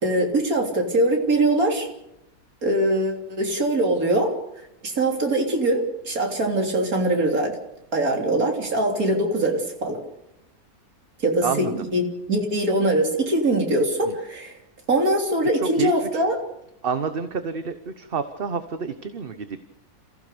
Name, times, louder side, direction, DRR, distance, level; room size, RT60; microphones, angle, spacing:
voice 1, 0.0-1.9 2.6-4.4 4.8-7.6 7.9-10.0 11.2-14.5 14.9-16.4, right 1 dB, 70° right, 2 dB, 3.8 m, -22 dB
voice 2, 11.4-11.9 14.0-14.1 15.5-16.2 16.8-19.6, right 5 dB, 40° right, 10 dB, 1.1 m, -28 dB
28.0 x 15.5 x 6.8 m, 0.82 s
omnidirectional pair, 1.6 m